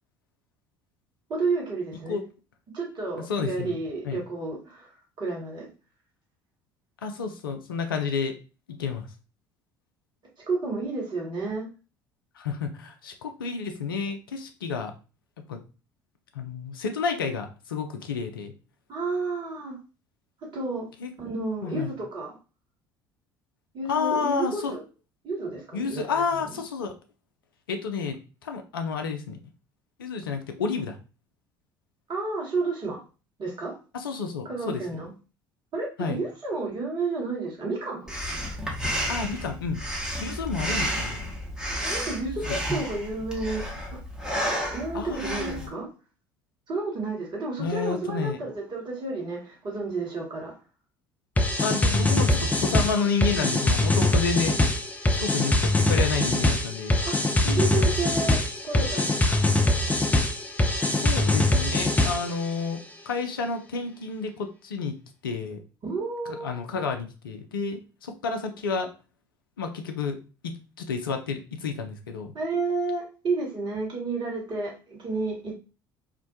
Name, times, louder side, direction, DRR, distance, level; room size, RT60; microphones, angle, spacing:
voice 1, 1.3-2.2 2.7-5.7 10.5-11.7 18.9-19.8 20.5-20.9 21.2-22.4 23.7-24.8 25.2-26.5 32.1-33.0 33.4-33.8 34.5-35.1 35.7-38.1 41.8-43.6 43.9-44.0 44.7-45.9 46.7-50.6 57.0-59.4 65.8-66.5 72.3-75.5, right 3 dB, 40° right, -2 dB, 1.2 m, -31 dB
voice 2, 3.3-3.8 4.0-4.2 7.0-8.3 8.7-9.1 12.4-14.9 15.5-15.6 16.3-18.5 21.0-21.1 21.6-21.9 23.9-24.8 25.7-26.9 27.7-29.4 30.0-31.0 33.9-34.8 36.0-36.2 39.1-39.8 40.2-41.3 42.2-42.6 44.9-45.7 47.6-48.4 51.6-54.6 55.1-57.0 60.9-62.8 63.1-65.0 65.2-65.6 66.4-68.9 69.6-70.2 70.4-72.3, left 5 dB, 80° left, 6 dB, 0.4 m, -30 dB
Breathing, 38.1-45.7, equal, 5° right, 0.9 m, -31 dB
sound 1, 51.4-62.4, left 2 dB, 15° left, 0.4 m, -23 dB
2.5 x 2.1 x 2.6 m, 0.33 s
figure-of-eight pair, 60°, 12 cm